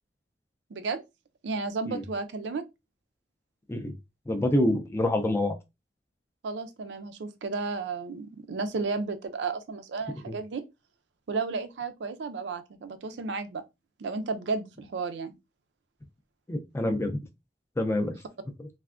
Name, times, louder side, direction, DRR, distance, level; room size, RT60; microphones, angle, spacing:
voice 1, 0.7-1.0 1.4-2.6 6.4-10.6 11.3-13.6 14.0-15.3, right 4 dB, 75° right, 0.4 m, -33 dB
voice 2, 4.3-5.5 10.3-10.4 16.5-17.2 17.8-18.2 18.6-18.7, left 1 dB, 15° left, 0.4 m, -26 dB
3.3 x 2.1 x 2.4 m
head